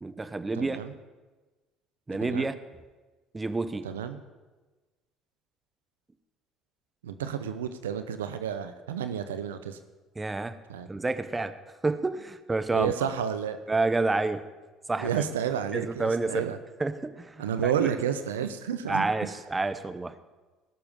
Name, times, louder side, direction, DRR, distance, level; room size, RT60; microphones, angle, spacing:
voice 1, 0.0-0.8 2.1-2.6 3.3-3.9 10.2-10.6 10.9-11.6 11.8-12.9 13.7-14.4 14.9-15.2 15.7-16.5 16.8-17.9 18.9-20.2, right 3 dB, 20° right, 11 dB, 0.9 m, -29 dB
voice 2, 0.6-0.9 2.2-2.5 3.8-4.2 7.0-9.8 10.7-10.9 12.7-13.6 15.0-16.6 17.4-19.1, right 8 dB, 85° right, 10 dB, 0.6 m, -31 dB
17.5 x 6.9 x 5.4 m, 1.2 s
hypercardioid pair, 60°, 0 cm